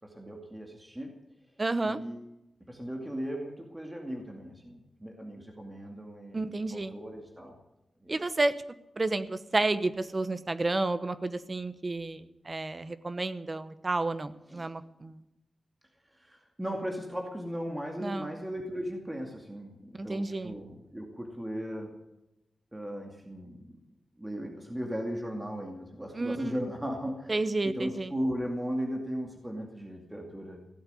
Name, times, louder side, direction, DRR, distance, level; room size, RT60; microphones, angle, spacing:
voice 1, 0.0-1.1 1.8-2.2 2.7-7.6 8.0-8.2 14.5-14.7 16.1-21.9 22.7-23.7 24.2-30.6, equal, 10° right, 1 dB, 2.3 m, -37 dB
voice 2, 1.6-2.0 6.3-6.9 8.1-8.5 9.0-15.2 18.0-18.3 19.9-20.6 26.1-26.6 27.3-28.1, right 2 dB, 30° right, 12 dB, 1.0 m, -31 dB
16.5 x 7.9 x 9.6 m, 0.92 s
wide cardioid pair, 140°, 0 cm